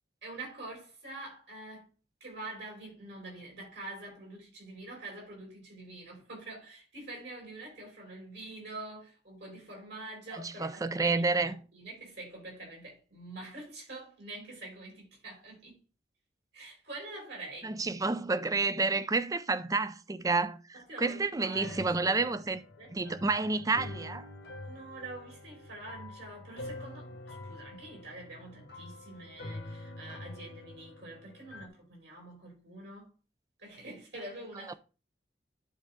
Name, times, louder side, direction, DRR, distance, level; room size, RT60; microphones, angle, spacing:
voice 1, 0.2-1.9 2.2-15.8 16.5-17.7 20.7-22.4 22.8-22.9 24.6-33.1 33.6-34.8, right 2 dB, 70° right, 4.9 m, -46 dB
voice 2, 10.3-11.6 17.6-22.6 22.9-24.3 34.7-34.8, right 3 dB, 20° right, 0.4 m, -30 dB
sound 1, 21.5-31.7, left 2 dB, 70° left, 1.5 m, -46 dB
10.5 x 4.3 x 3.6 m
head